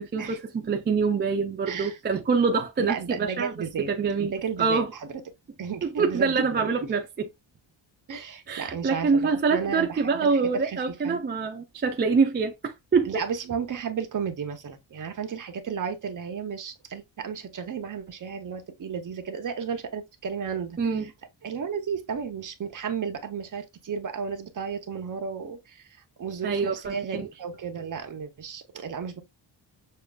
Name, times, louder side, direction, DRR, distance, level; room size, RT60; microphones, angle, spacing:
voice 1, 0.0-3.5 3.9-4.3 4.6-4.9 6.0-7.1 8.5-13.1 20.8-21.1 26.4-26.9, right 5 dB, 25° right, 0.3 m, -25 dB
voice 2, 1.7-2.0 2.8-3.9 4.2-5.1 5.6-6.9 8.1-11.3 13.1-21.1 21.4-29.2, right 6 dB, 40° right, 0.7 m, -33 dB
6.5 x 2.4 x 2.2 m
wide cardioid pair, 145°, 47 cm